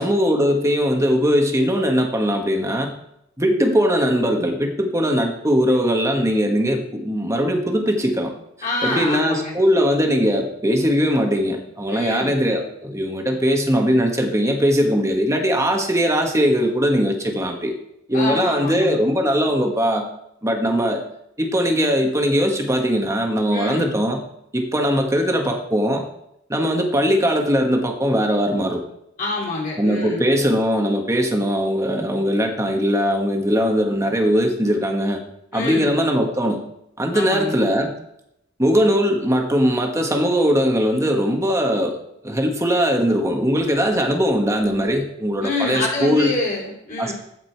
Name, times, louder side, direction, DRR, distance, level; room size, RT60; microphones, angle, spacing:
voice 1, 0.0-2.9 3.4-8.3 8.8-17.7 18.1-20.0 20.4-21.0 21.4-24.2 24.5-26.0 26.5-28.8 29.8-35.2 35.5-36.6 37.0-37.9 38.6-41.9 42.2-46.3 47.0-47.1, equal, 15° right, 3 dB, 1.4 m, -20 dB
voice 2, 8.6-9.5 11.9-12.4 18.1-19.0 23.5-23.9 29.2-30.3 35.5-35.9 37.1-37.6 45.4-47.1, left 2 dB, 45° left, -4 dB, 3.0 m, -26 dB
14.5 x 5.3 x 4.6 m, 0.79 s
head